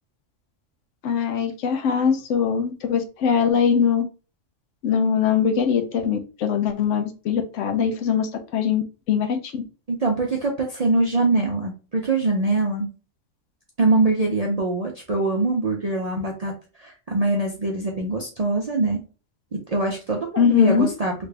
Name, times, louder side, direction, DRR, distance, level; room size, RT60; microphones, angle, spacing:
voice 1, 1.0-4.0 4.8-9.6 20.4-20.9, left 7 dB, 75° left, 7 dB, 0.9 m, -22 dB
voice 2, 9.9-12.9 13.8-16.5 16.8-19.0 19.7-21.1, right 2 dB, 50° right, 0 dB, 0.4 m, -23 dB
3.2 x 2.5 x 3.3 m, 0.34 s
omnidirectional pair, 1.3 m